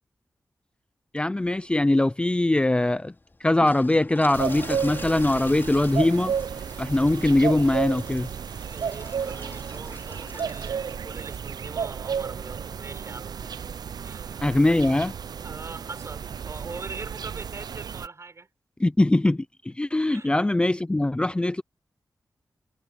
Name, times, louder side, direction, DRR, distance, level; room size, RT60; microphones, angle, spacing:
voice 1, 1.1-3.1 3.4-6.3 6.8-8.3 14.4-15.1 18.8-21.6, left 2 dB, 15° left, 0.5 m, -22 dB
sound 1, 1.4-13.8, left 2 dB, 30° left, 4.9 m, -47 dB
sound 2, 4.3-18.1, right 7 dB, 80° right, 0.5 m, -32 dB
voice 2, 8.7-13.7 14.0-14.6 15.4-18.5 20.1-20.3, right 3 dB, 45° right, 7.3 m, -42 dB
wide cardioid pair, 105°, 7 cm